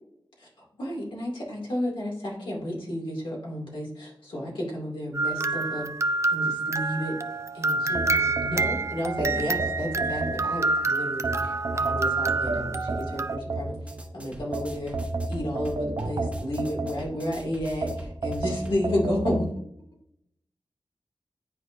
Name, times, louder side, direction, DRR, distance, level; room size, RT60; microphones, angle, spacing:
voice 1, 0.4-5.9 6.3-7.1 7.5-13.8 14.1-15.0 15.3-19.5, left 1 dB, 80° left, -3 dB, 2.3 m, -32 dB
sound 1, 5.1-13.4, right 3 dB, 35° right, 0.4 m, -27 dB
sound 2, 7.9-10.7 11.2-14.0 14.5-17.3 17.8-19.4, right 3 dB, 50° right, 0.8 m, -31 dB
sound 3, 13.8-18.8, right 1 dB, 15° right, 1.1 m, -45 dB
9.6 x 4.4 x 2.6 m, 0.72 s
wide cardioid pair, 75°, 8 cm